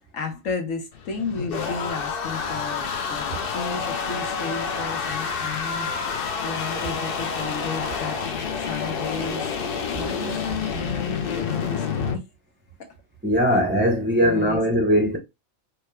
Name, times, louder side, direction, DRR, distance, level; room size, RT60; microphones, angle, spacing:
voice 1, 0.1-8.3 8.6-9.4 9.9-12.2 12.8-12.9 14.2-14.6, left 3 dB, 80° left, 1.5 m, -33 dB
sound 1, 0.9-12.2, left 6 dB, 55° left, 0.7 m, -28 dB
voice 2, 13.2-15.2, equal, 15° right, 0.5 m, -20 dB
4.8 x 2.3 x 3.2 m
omnidirectional pair, 1.3 m